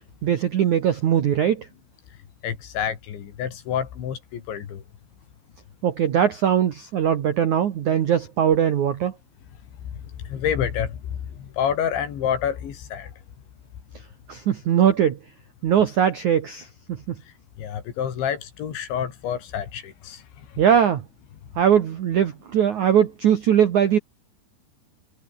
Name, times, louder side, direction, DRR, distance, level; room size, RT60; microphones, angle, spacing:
voice 1, 0.2-1.7 5.8-9.1 14.3-15.2 15.6-17.2 20.6-21.1 21.6-24.0, right 9 dB, 65° right, 1.9 m, -20 dB
voice 2, 2.4-4.8 10.3-11.0 11.6-13.1 17.6-20.2, left 8 dB, 70° left, 5.4 m, -28 dB
omnidirectional pair, 5.6 m